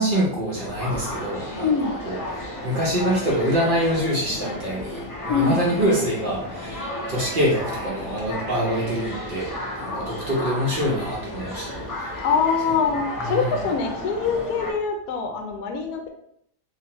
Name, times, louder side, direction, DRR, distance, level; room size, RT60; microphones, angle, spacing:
voice 1, 0.0-1.7 2.0-9.5 9.7-12.1 13.3-13.5, equal, 40° right, -5 dB, 0.8 m, -25 dB
sound 1, 0.5-14.7, left 1 dB, 25° left, 0.4 m, -33 dB
voice 2, 1.6-2.0 5.3-5.6 12.2-16.1, left 5 dB, 70° left, 3 dB, 1.0 m, -24 dB
3.4 x 3.0 x 2.9 m, 0.69 s
omnidirectional pair, 1.8 m